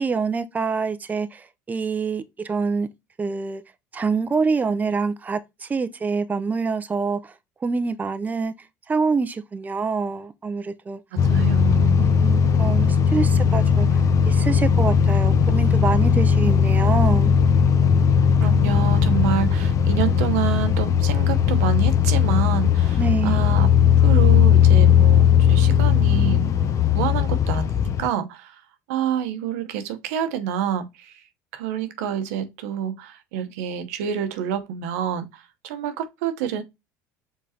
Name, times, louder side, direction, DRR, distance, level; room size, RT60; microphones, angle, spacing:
voice 1, 0.0-2.9 3.2-3.6 3.9-7.3 7.6-8.5 8.9-11.0 12.0-14.0 14.3-17.3 23.0-23.4, right 4 dB, 20° right, 0.6 m, -26 dB
voice 2, 11.1-12.1 18.4-23.7 24.0-28.6 28.9-31.2 31.5-36.6, right 9 dB, 85° right, 0.8 m, -28 dB
sound 1, 11.2-28.1, left 7 dB, 45° left, 0.7 m, -18 dB
4.8 x 3.9 x 2.7 m
supercardioid pair, 95°, 8 cm